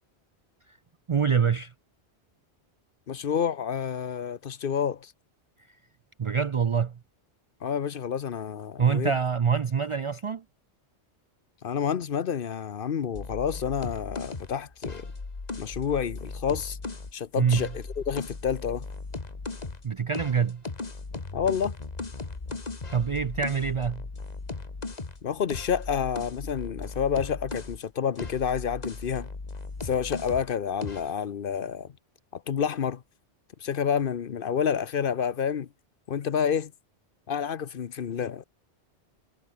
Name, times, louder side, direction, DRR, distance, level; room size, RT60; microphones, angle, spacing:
voice 1, 1.1-1.7 6.2-7.0 8.8-10.4 17.4-17.7 19.8-20.6 22.9-24.0, right 6 dB, 50° right, 0.3 m, -25 dB
voice 2, 3.1-5.1 7.6-9.1 11.6-15.1 15.6-16.8 17.1-18.9 21.3-21.8 25.2-29.3 29.8-31.9 32.3-33.0 33.6-35.7 36.1-36.7 37.3-38.4, left 7 dB, 55° left, 0.9 m, -29 dB
sound 1, 13.1-17.1 17.5-19.9 20.1-27.8 28.2-30.5 30.8-31.1, left 3 dB, 40° left, 1.8 m, -37 dB
omnidirectional pair, 1.1 m